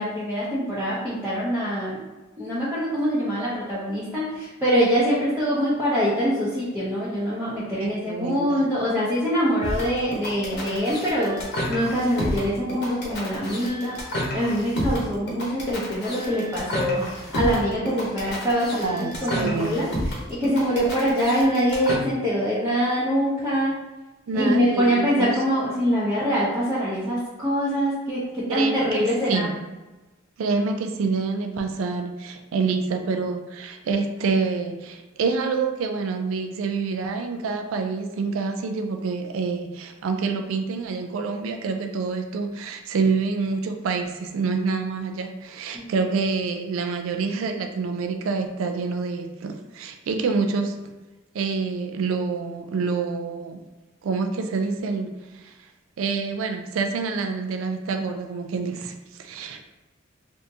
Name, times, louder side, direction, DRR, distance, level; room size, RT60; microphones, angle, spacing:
voice 1, 0.0-2.0 2.4-11.4 11.7-14.0 14.3-19.9 20.3-23.8 24.3-29.5 45.7-46.0, equal, 15° right, -11 dB, 0.7 m, -24 dB
voice 2, 7.7-8.6 18.8-19.7 24.3-25.3 28.5-29.5 30.4-50.8 51.3-53.6 54.0-55.5 56.0-59.6, right 4 dB, 80° right, 5 dB, 0.4 m, -27 dB
sound 1, 9.6-21.9, equal, 55° left, 0.9 m, -30 dB
3.4 x 2.6 x 2.7 m, 1.2 s
head